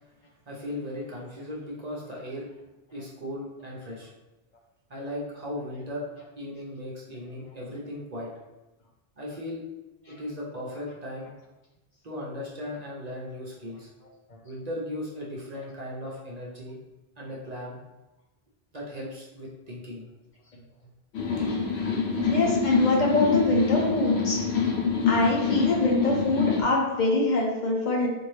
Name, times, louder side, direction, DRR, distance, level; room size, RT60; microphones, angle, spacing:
voice 1, 0.5-2.5 2.9-4.1 4.9-6.0 6.3-8.3 9.2-9.6 10.1-11.3 12.0-13.9 14.4-16.8 17.2-17.8 18.7-20.1, left 1 dB, 45° right, -4 dB, 0.8 m, -37 dB
sound 1, 21.1-26.6, left 6 dB, 90° left, 0.9 m, -26 dB
voice 2, 22.1-24.4 25.1-28.1, left 2 dB, 50° left, -3 dB, 0.8 m, -24 dB
4.3 x 2.6 x 3.2 m, 1.0 s
omnidirectional pair, 1.0 m